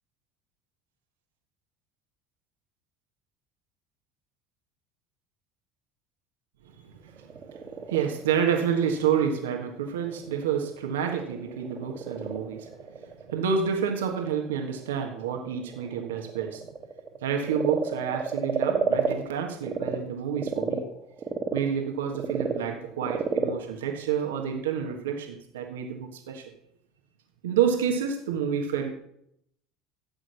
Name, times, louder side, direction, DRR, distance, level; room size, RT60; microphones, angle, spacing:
voice 1, 6.6-7.6 7.9-12.7 13.3-16.7 17.2-20.9 21.5-26.4 27.4-28.9, right 7 dB, 80° right, 3 dB, 1.5 m, -29 dB
Frog, 7.1-20.0 20.3-25.0, right 5 dB, 35° right, 1.8 m, -33 dB
12.0 x 7.9 x 5.7 m, 0.73 s
hypercardioid pair, 70°, 0 cm